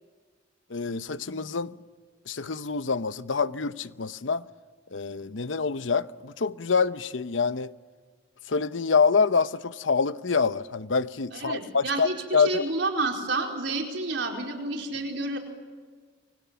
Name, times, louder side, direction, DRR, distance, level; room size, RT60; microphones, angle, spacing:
voice 1, 0.7-1.7 2.3-4.4 4.9-7.7 8.5-12.7, left 5 dB, 90° left, 0.9 m, -26 dB
voice 2, 11.3-15.4, right 2 dB, 75° right, 4.5 m, -30 dB
28.5 x 25.0 x 7.0 m
head